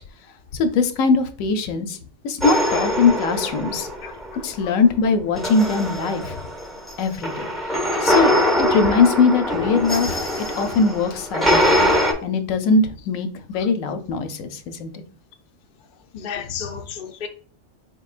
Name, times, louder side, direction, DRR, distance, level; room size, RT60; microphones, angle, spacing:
voice 1, 0.6-2.0 2.2-3.9 4.4-6.4 7.0-7.5 8.0-8.3 8.6-11.9 12.2-15.0, left 4 dB, 85° left, 1.0 m, -21 dB
sound 1, 2.4-4.4 5.3-12.1, equal, ahead, 0.5 m, -22 dB
voice 2, 4.0-4.8 7.9-8.4 13.5-13.7 16.1-17.3, left 7 dB, 60° left, 0.5 m, -35 dB
4.2 x 3.7 x 2.4 m
omnidirectional pair, 1.4 m